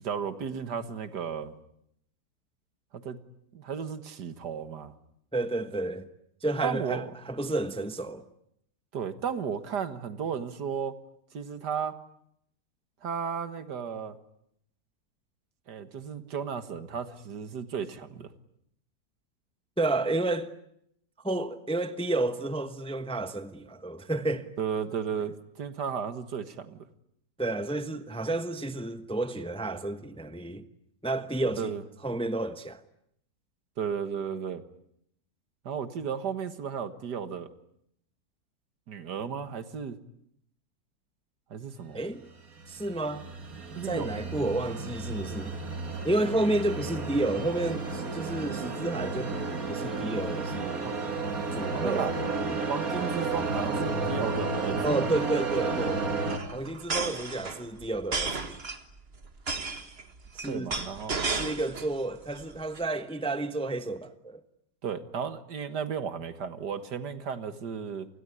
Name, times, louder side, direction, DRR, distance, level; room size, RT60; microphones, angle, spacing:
voice 1, 0.0-1.5 2.9-3.2 3.5-4.9 6.6-7.1 8.9-10.9 11.3-12.0 13.0-14.2 15.7-18.3 24.6-26.8 31.6-31.8 33.8-34.6 35.7-37.5 38.9-40.0 41.5-42.0 43.8-44.1 44.4-44.5 50.8-50.9 51.7-52.1 52.7-55.0 60.5-61.2 64.8-68.1, right 7 dB, 70° right, 2.1 m, -34 dB
voice 2, 5.3-6.1 6.4-8.3 19.8-20.5 21.2-24.5 27.4-30.7 31.0-31.7 32.0-32.8 41.9-42.2 42.7-43.3 43.8-45.5 46.0-49.4 49.7-50.9 51.5-52.6 54.8-56.1 56.5-58.6 60.3-60.7 61.3-64.4, right 2 dB, 5° left, 0.9 m, -31 dB
sound 1, 42.3-56.4, right 3 dB, 55° right, 3.1 m, -32 dB
sound 2, 53.4-53.5 53.8-53.9 54.1-54.4 55.3-61.9 62.3-62.8, right 4 dB, 35° right, 1.9 m, -34 dB
27.5 x 20.5 x 9.9 m
omnidirectional pair, 1.8 m